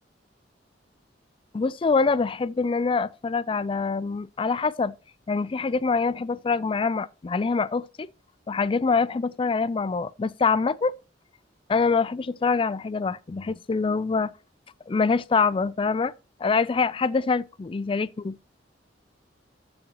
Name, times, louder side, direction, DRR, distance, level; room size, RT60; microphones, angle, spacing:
voice 1, 1.5-4.9 5.3-7.9 8.5-10.9 11.7-14.3 14.9-16.1 16.4-18.4, left 4 dB, 30° left, 0.4 m, -25 dB
14.5 x 6.4 x 2.9 m
head